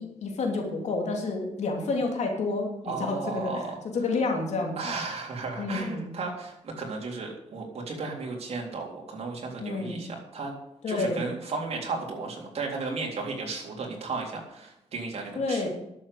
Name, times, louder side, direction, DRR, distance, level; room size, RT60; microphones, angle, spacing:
voice 1, 0.0-3.6 3.9-4.9 5.6-6.0 9.6-10.0 10.8-11.2 15.3-15.7, left 3 dB, 70° left, 2 dB, 2.9 m, -29 dB
voice 2, 2.8-3.8 4.8-10.5 10.9-15.6, right 3 dB, 55° right, 0 dB, 3.7 m, -34 dB
11.5 x 7.8 x 8.4 m, 0.84 s
wide cardioid pair, 120°, 12 cm